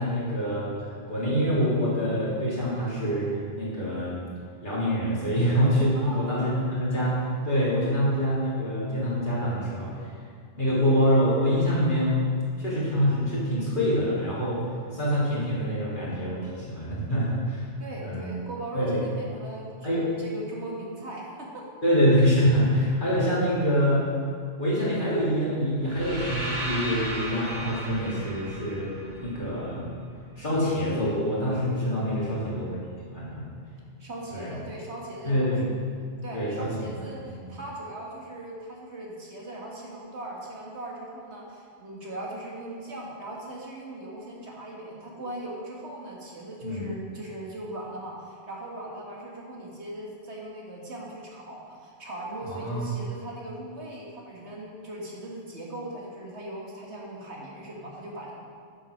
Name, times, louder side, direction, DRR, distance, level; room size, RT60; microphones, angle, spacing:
voice 1, 0.0-4.2 4.6-10.0 10.6-12.2 12.6-14.6 14.9-17.7 18.0-18.3 18.7-19.0 19.8-20.1 21.8-24.0 24.6-29.9 30.4-32.8 33.1-33.5 34.3-34.6 35.3-35.7 36.3-37.1 46.6-46.9 52.4-52.9, equal, 45° left, -8 dB, 3.6 m, -25 dB
voice 2, 17.8-21.6 32.1-32.6 34.0-35.5 36.2-58.3, right 1 dB, 65° right, -3 dB, 2.2 m, -39 dB
sound 1, 25.8-29.9, right 1 dB, 30° right, 2.1 m, -35 dB
10.0 x 7.7 x 6.6 m, 2.1 s
omnidirectional pair, 1.2 m